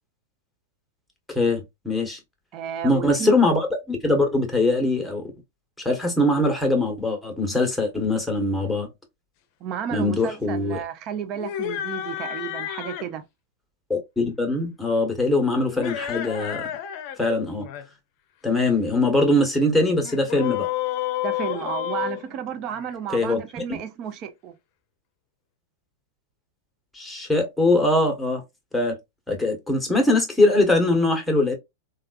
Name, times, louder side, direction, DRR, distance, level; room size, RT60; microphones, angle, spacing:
voice 1, 1.3-2.2 2.8-5.3 5.8-8.9 9.9-10.8 13.9-16.7 17.2-17.7 18.4-20.7 23.1-23.4 23.7-23.8 26.9-28.4 28.7-28.9 29.3-31.5, left 2 dB, 5° left, 1.2 m, -22 dB
voice 2, 2.5-3.3 9.6-13.2 21.2-24.5, right 8 dB, 40° right, 0.6 m, -32 dB
sound 1, 11.3-13.1 15.7-17.2 17.5-17.8 20.0-22.9, left 12 dB, 50° left, 0.6 m, -30 dB
3.3 x 2.4 x 2.4 m
hypercardioid pair, 115°, 0 cm